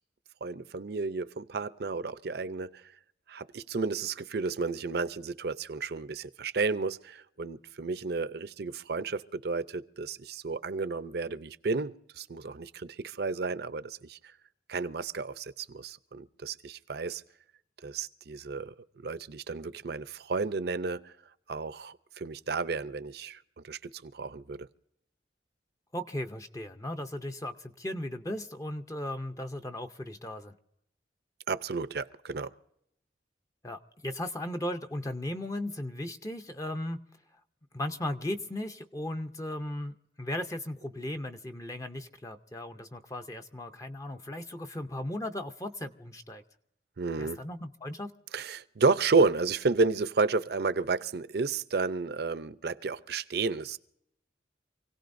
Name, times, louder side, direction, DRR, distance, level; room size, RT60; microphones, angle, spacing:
voice 1, 0.4-2.8 3.3-14.2 14.7-17.2 17.8-18.7 19.0-21.1 21.5-24.7 31.5-32.5 47.0-47.4 48.3-53.8, right 4 dB, 60° right, 0.6 m, -32 dB
voice 2, 25.9-30.5 33.6-37.0 37.7-46.4 47.2-48.1, left 1 dB, 20° left, 0.6 m, -36 dB
27.5 x 17.0 x 2.6 m
head